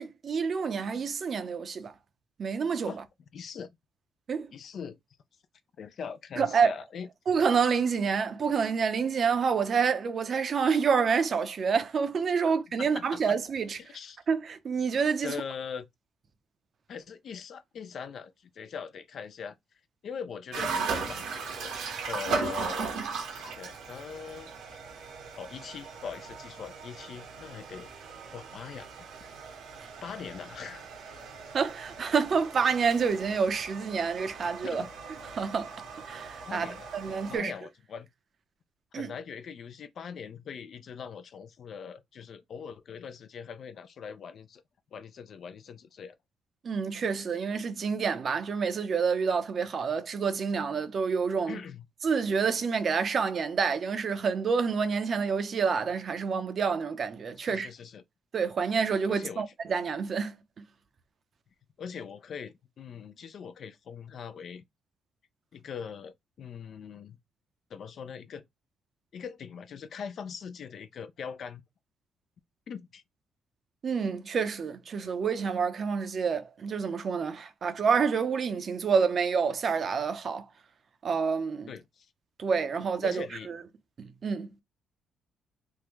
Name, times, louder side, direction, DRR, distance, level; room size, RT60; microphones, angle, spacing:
voice 1, 0.0-1.9 2.4-2.9 4.3-4.5 6.4-6.7 7.3-13.8 14.3-15.4 31.5-34.8 35.3-35.7 36.1-36.7 36.9-37.5 38.9-39.1 46.6-51.6 52.0-57.7 58.3-60.4 73.8-80.5 81.0-81.7 82.4-83.6 84.0-84.5, right 6 dB, 45° right, 0.6 m, -28 dB
voice 2, 3.3-3.7 4.5-5.0 5.8-7.1 12.8-13.4 13.8-14.2 15.2-15.9 16.9-19.6 20.0-21.8 22.1-23.0 23.3-24.5 25.4-27.9 28.3-28.9 30.0-30.8 34.6-34.9 36.5-38.1 38.9-44.6 44.9-46.1 51.5-51.9 57.4-58.0 59.1-59.4 61.8-64.6 65.5-67.2 67.7-68.4 69.1-71.6 72.7-73.0 81.7-82.1 83.0-83.5, left 6 dB, 55° left, 0.4 m, -41 dB
sound 1, 20.5-37.4, right 5 dB, 85° right, 1.2 m, -38 dB
3.5 x 2.1 x 3.0 m
cardioid pair, 100°, 0 cm